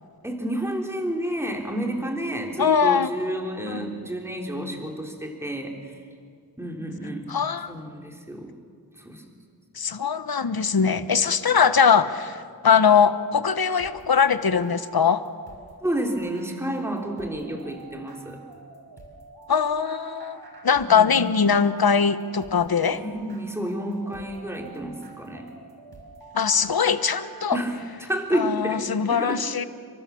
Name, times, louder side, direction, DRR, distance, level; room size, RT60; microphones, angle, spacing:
voice 1, 0.2-5.9 6.6-7.4 7.7-8.5 9.0-9.2 15.8-18.4 20.9-21.1 22.9-25.5 27.5-29.4, right 1 dB, 5° right, 1 dB, 3.4 m, -30 dB
voice 2, 2.6-3.1 3.7-3.8 7.3-7.7 9.8-15.2 19.5-23.0 26.3-27.6 28.3-29.6, left 6 dB, 70° left, 12 dB, 1.2 m, -21 dB
sound 1, 13.8-27.6, right 5 dB, 90° right, 5.2 m, -46 dB
30.0 x 23.5 x 7.1 m, 2.2 s
wide cardioid pair, 85°, 37 cm